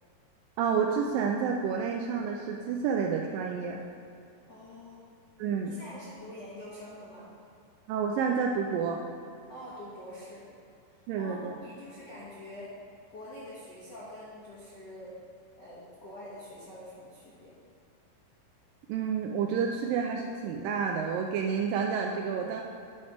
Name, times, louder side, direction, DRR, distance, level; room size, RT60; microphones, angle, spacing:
voice 1, 0.6-3.8 5.4-5.7 7.9-9.0 11.1-11.6 18.9-22.6, right 6 dB, 90° right, 1 dB, 1.9 m, -29 dB
voice 2, 4.5-5.0 5.6-7.3 9.5-10.4 11.2-12.7 13.1-15.1 15.6-17.6, left 1 dB, 85° left, -9 dB, 0.9 m, -45 dB
9.9 x 4.2 x 4.9 m, 2.5 s
omnidirectional pair, 4.5 m